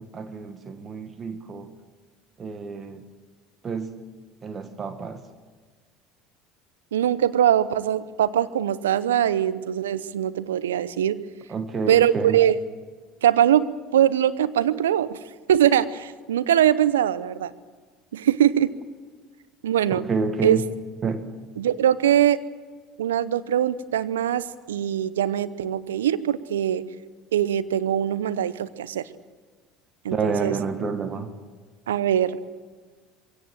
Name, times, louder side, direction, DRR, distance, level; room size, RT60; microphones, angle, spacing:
voice 1, 0.0-1.7 2.4-3.0 3.6-3.9 4.4-5.2 11.5-12.4 19.9-20.7 21.0-21.2 30.1-31.3, right 4 dB, 35° right, 8 dB, 1.8 m, -29 dB
voice 2, 6.9-11.2 11.9-12.6 13.2-15.2 15.5-17.5 18.1-18.7 19.6-20.0 20.4-20.6 21.6-22.4 23.0-26.8 27.3-29.0 30.0-30.5 31.9-32.4, right 10 dB, 80° right, 15 dB, 0.8 m, -22 dB
23.0 x 17.0 x 7.6 m, 1.5 s
hypercardioid pair, 70°, 0 cm